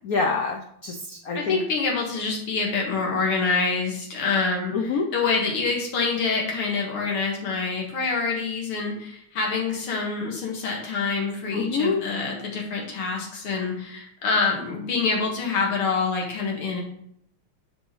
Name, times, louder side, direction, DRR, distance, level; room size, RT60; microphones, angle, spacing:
voice 1, 0.0-1.6 4.7-5.1 11.5-12.0, left 4 dB, 70° left, 3 dB, 0.8 m, -26 dB
voice 2, 1.3-4.7 5.1-16.8, left 4 dB, 85° left, -1 dB, 2.6 m, -26 dB
11.0 x 5.5 x 3.1 m, 0.70 s
omnidirectional pair, 2.4 m